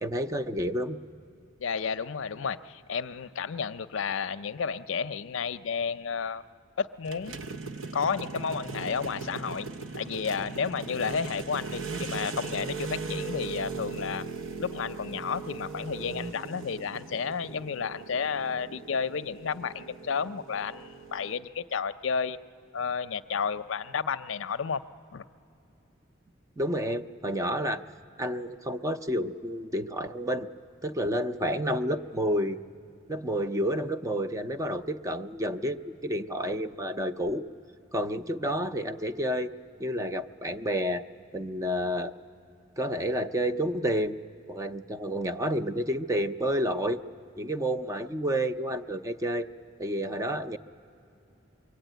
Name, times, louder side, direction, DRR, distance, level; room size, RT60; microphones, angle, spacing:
voice 1, 0.0-1.0 26.6-27.8 28.2-30.5 30.8-32.6 33.1-37.4 37.9-39.5 39.8-41.0 41.3-42.1 42.8-44.2 44.5-47.0 47.4-49.5 49.8-50.6, equal, 15° right, 9 dB, 0.5 m, -30 dB
voice 2, 1.6-6.4 6.8-7.4 7.9-9.7 9.9-14.3 14.6-22.4 22.7-24.8 25.1-25.2, left 6 dB, 70° left, 12 dB, 0.5 m, -32 dB
sound 1, 7.0-21.4, right 4 dB, 85° right, 0.8 m, -39 dB
24.5 x 22.5 x 9.1 m, 2.7 s
head